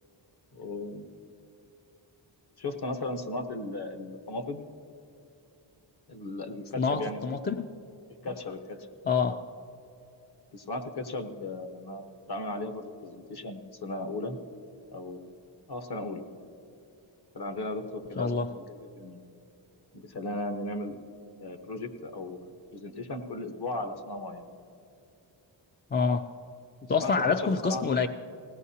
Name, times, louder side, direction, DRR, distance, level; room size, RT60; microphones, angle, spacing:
voice 1, 0.5-1.1 2.6-4.6 6.1-7.2 8.2-8.8 10.5-14.4 14.9-15.4 15.7-16.2 17.3-19.2 19.9-21.0 21.4-24.4 27.0-27.9, left 2 dB, 55° left, 7 dB, 1.1 m, -36 dB
voice 2, 6.8-7.7 9.1-9.4 18.2-18.5 25.9-26.2 26.9-28.1, left 5 dB, 25° left, 7 dB, 0.3 m, -26 dB
20.5 x 16.5 x 2.8 m, 2.7 s
wide cardioid pair, 105°, 47 cm